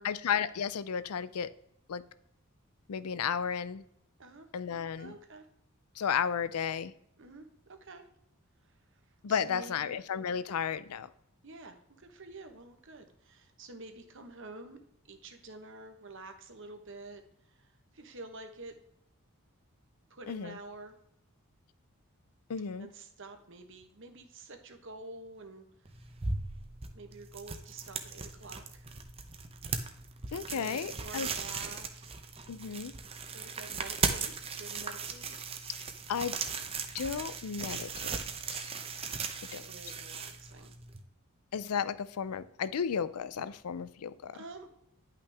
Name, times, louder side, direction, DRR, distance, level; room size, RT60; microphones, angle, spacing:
voice 1, 0.0-1.5 1.9-2.0 2.9-3.8 4.5-5.1 6.0-6.9 9.2-11.1 20.3-20.6 22.5-22.9 30.3-31.3 32.5-32.9 36.1-36.4 36.9-38.1 38.5-38.7 39.5-39.7 41.5-44.4, left 7 dB, 85° left, 16 dB, 0.5 m, -33 dB
voice 2, 5.0-5.5 7.2-8.1 8.6-9.0 9.3-10.0 11.4-14.8 15.1-18.8 20.1-20.9 22.8-26.1 26.9-28.9 30.3-32.2 33.3-35.3 39.4-40.8 44.3-44.7, right 2 dB, 55° right, 6 dB, 1.1 m, -49 dB
sound 1, 25.9-41.0, right 5 dB, 25° right, 0.6 m, -38 dB
10.0 x 5.7 x 3.4 m, 0.74 s
head